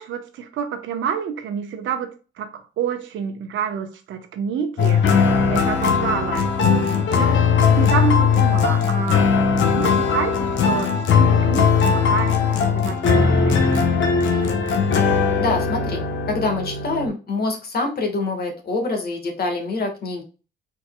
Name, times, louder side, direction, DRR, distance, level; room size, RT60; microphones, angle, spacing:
voice 1, 0.0-5.1 5.5-6.8 7.1-9.2 9.6-13.9, right 7 dB, 75° right, 0.9 m, -28 dB
sound 1, 4.8-17.1, left 6 dB, 70° left, 1.0 m, -19 dB
voice 2, 15.4-20.2, left 3 dB, 50° left, 1.5 m, -25 dB
4.4 x 4.4 x 2.2 m
cardioid pair, 90°, 20 cm